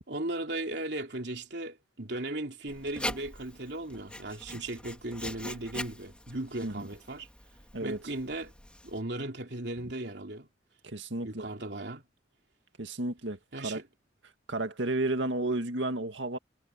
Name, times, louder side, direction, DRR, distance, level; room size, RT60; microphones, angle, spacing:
voice 1, 0.1-7.3 7.8-8.5 8.8-10.5 11.2-12.0 13.5-13.9, right 2 dB, 65° right, 3.5 m, -37 dB
Writing, 2.7-9.0, left 1 dB, 5° left, 2.8 m, -42 dB
voice 2, 10.8-11.5 12.8-13.8 14.5-16.4, right 2 dB, 85° right, 2.0 m, -32 dB
head